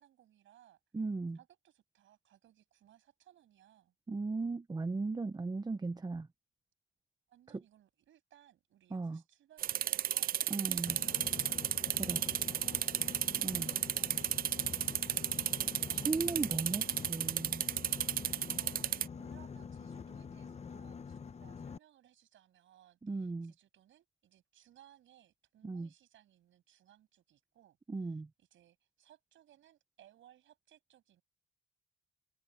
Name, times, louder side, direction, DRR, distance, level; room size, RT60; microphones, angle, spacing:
voice 1, 0.0-0.8 1.3-3.9 7.3-10.6 10.8-15.2 18.4-31.2, right 12 dB, 75° right, 7.7 m, -64 dB
voice 2, 0.9-1.4 4.1-6.3 8.9-9.2 10.5-11.0 12.1-12.2 13.4-13.7 15.9-17.7 23.0-23.5 25.6-25.9 27.9-28.3, right 3 dB, 20° right, 0.9 m, -37 dB
sound 1, 9.6-19.1, right 11 dB, 50° right, 0.4 m, -34 dB
Boat Water vehicle, 10.8-21.8, left 6 dB, 35° left, 1.0 m, -46 dB
cardioid pair, 90°, 20 cm